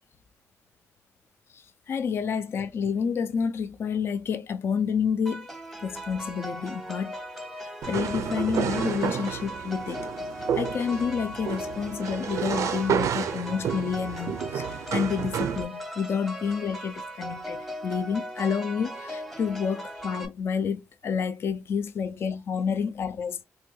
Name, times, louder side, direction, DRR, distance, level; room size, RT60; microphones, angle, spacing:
voice 1, 1.5-5.5 5.8-7.2 7.6-10.1 10.5-23.4, left 6 dB, 50° left, 0.3 m, -29 dB
sound 1, 5.3-20.3, equal, ahead, 0.7 m, -38 dB
sound 2, 7.8-15.6, right 8 dB, 75° right, 0.4 m, -30 dB
3.3 x 2.2 x 3.1 m
cardioid pair, 120°, 5 cm